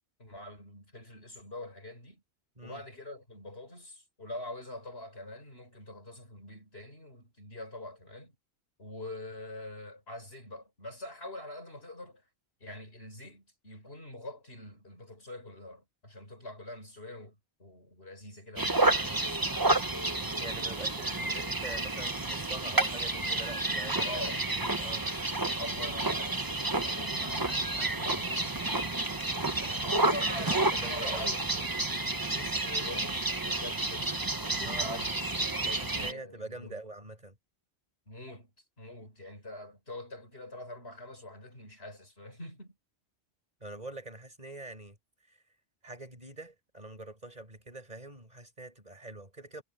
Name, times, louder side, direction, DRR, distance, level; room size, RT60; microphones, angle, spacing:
voice 1, 0.2-2.2 2.6-8.4 8.8-12.2 12.6-19.2 24.0-24.4 25.6-26.4 26.8-28.8 29.8-31.9 32.3-36.8 38.1-38.5 38.8-42.8, left 1 dB, 65° left, 6.7 m, -44 dB
sound 1, 18.6-36.1, right 2 dB, 20° right, 1.1 m, -30 dB
voice 2, 20.4-25.0 29.6-31.3 34.6-34.9 35.7-37.4 43.6-45.0 45.3-45.4 45.8-49.6, right 2 dB, 35° right, 6.3 m, -45 dB
omnidirectional pair, 1.1 m